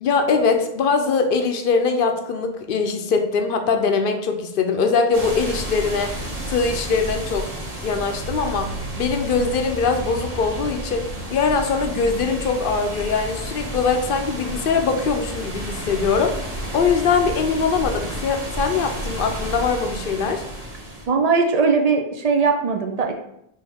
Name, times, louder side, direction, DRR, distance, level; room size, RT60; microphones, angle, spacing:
voice 1, 0.0-6.1 6.5-7.5 7.8-8.7 9.0-16.4 16.7-20.4, left 5 dB, 65° left, 5 dB, 0.7 m, -22 dB
sound 1, 5.1-21.1, right 1 dB, 35° right, 1.4 m, -31 dB
voice 2, 21.1-23.1, right 4 dB, 55° right, 3 dB, 0.4 m, -19 dB
5.5 x 2.6 x 3.5 m, 0.78 s
omnidirectional pair, 1.1 m